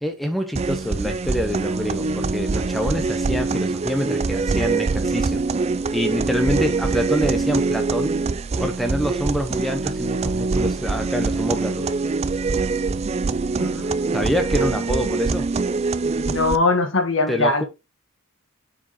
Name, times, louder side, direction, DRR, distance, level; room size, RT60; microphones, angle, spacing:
voice 1, 0.0-8.2 8.5-11.9 14.1-15.5 17.3-17.6, equal, ahead, 0.8 m, -26 dB
sound 1, 0.5-16.6, right 4 dB, 30° right, 0.3 m, -24 dB
voice 2, 16.3-17.7, left 3 dB, 65° left, 1.8 m, -21 dB
7.1 x 4.9 x 4.2 m
head